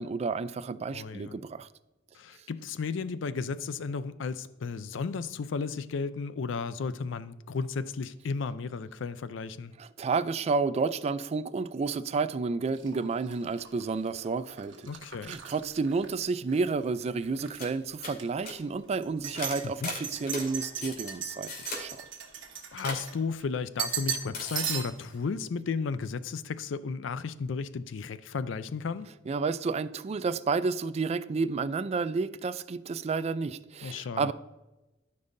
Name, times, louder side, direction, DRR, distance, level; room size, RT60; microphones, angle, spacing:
voice 1, 0.0-1.7 9.8-14.9 15.3-22.0 29.3-34.3, right 4 dB, 35° right, 0.3 m, -31 dB
voice 2, 0.9-1.4 2.1-9.7 14.9-15.4 19.6-19.9 22.7-29.1 33.8-34.3, left 5 dB, 75° left, 0.4 m, -34 dB
sound 1, 12.7-16.7 17.0-17.7 18.1-18.2 19.0-23.4 23.8-24.3 24.5-25.1, right 8 dB, 70° right, 1.2 m, -38 dB
sound 2, 17.3-17.4 17.6-17.7 18.0-18.5 19.3-20.5 20.8-21.1 21.5-21.8 22.8-23.0 24.3-24.7, left 2 dB, 55° left, 2.3 m, -37 dB
13.5 x 5.4 x 2.6 m
head